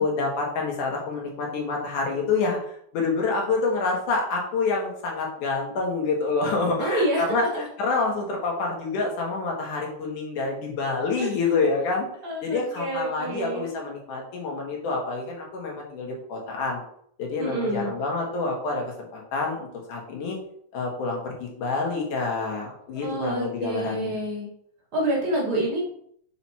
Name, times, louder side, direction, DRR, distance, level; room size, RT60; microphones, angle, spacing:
voice 1, 0.0-12.1 12.4-16.8 17.2-20.4 20.7-24.2, left 3 dB, 85° left, -1 dB, 3.3 m, -27 dB
voice 2, 6.8-7.5 11.2-11.4 12.2-13.7 17.4-17.9 22.9-24.5 24.9-25.8, right 1 dB, 45° right, -3 dB, 2.8 m, -27 dB
6.5 x 6.2 x 4.4 m, 0.67 s
omnidirectional pair, 3.5 m